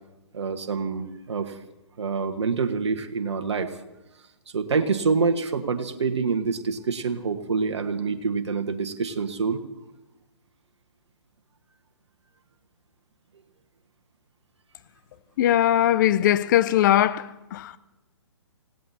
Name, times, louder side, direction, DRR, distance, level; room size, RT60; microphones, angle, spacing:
voice 1, 0.3-1.6 2.0-3.8 4.5-9.6, right 5 dB, 70° right, 1.5 m, -26 dB
voice 2, 15.4-17.8, left 12 dB, 40° left, 0.7 m, -20 dB
27.5 x 17.5 x 2.9 m
figure-of-eight pair, 130°, 15 cm